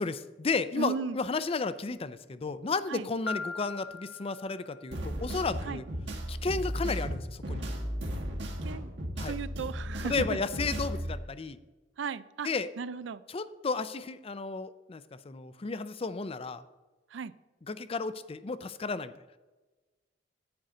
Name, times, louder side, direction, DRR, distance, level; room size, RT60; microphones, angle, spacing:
voice 1, 0.0-5.8 6.3-7.7 9.2-9.3 10.0-11.6 12.4-12.7 13.3-16.6 17.7-19.1, left 4 dB, 30° left, 14 dB, 0.5 m, -33 dB
voice 2, 0.8-1.2 2.9-3.1 5.6-5.8 8.6-8.9 9.3-10.4 12.0-12.5 12.8-13.2 17.1-17.3, right 5 dB, 90° right, 16 dB, 0.4 m, -35 dB
Piano, 3.3-5.2, left 4 dB, 85° left, 0.9 m, -40 dB
sound 1, 4.9-11.1, equal, 70° right, 1.8 m, -35 dB
10.5 x 9.5 x 3.8 m, 1.2 s
head